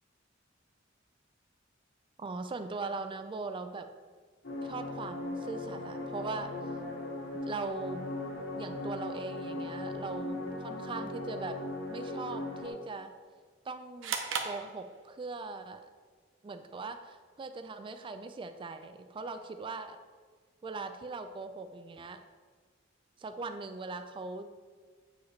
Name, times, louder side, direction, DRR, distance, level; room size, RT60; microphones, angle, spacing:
voice 1, 2.2-3.9 4.6-6.5 7.5-8.0 8.5-11.6 11.9-13.1 13.6-14.2 14.4-15.8 16.4-20.0 20.6-22.2 23.2-24.6, right 3 dB, 25° right, 8 dB, 0.3 m, -40 dB
sound 1, 4.4-12.7, left 2 dB, 75° left, 1.9 m, -38 dB
sound 2, 14.0-15.4, right 6 dB, 70° right, 0.7 m, -36 dB
8.0 x 4.7 x 3.2 m, 1.5 s
head